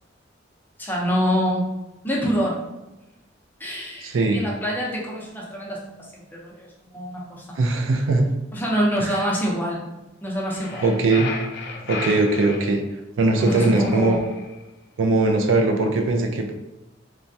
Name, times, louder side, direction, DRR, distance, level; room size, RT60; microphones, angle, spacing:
voice 1, 0.8-1.7 2.0-2.6 3.6-7.6 8.5-9.8 10.2-10.9 13.4-14.2, equal, 10° left, -4 dB, 0.6 m, -26 dB
voice 2, 4.0-4.4 7.6-8.3 10.8-11.3 11.9-12.8 13.2-14.2 15.0-16.5, right 2 dB, 80° right, 4 dB, 0.4 m, -20 dB
sound 1, 10.5-12.6 13.3-14.5, left 3 dB, 60° left, 0.4 m, -33 dB
3.2 x 2.2 x 2.6 m, 1.0 s
head